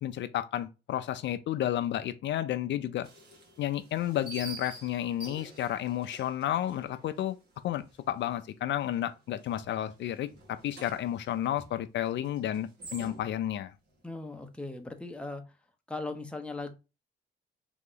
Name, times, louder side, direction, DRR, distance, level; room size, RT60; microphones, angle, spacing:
voice 1, 0.0-3.1 3.6-7.4 7.6-13.7, left 12 dB, 65° left, 0.5 m, -32 dB
sound 1, 3.0-7.9 8.2-8.3 8.8-9.2 9.5-13.5, right 2 dB, 55° right, 1.9 m, -48 dB
voice 2, 14.0-15.4 15.9-16.7, left 2 dB, 5° left, 0.8 m, -38 dB
3.7 x 3.0 x 3.8 m
cardioid pair, 90°, 20 cm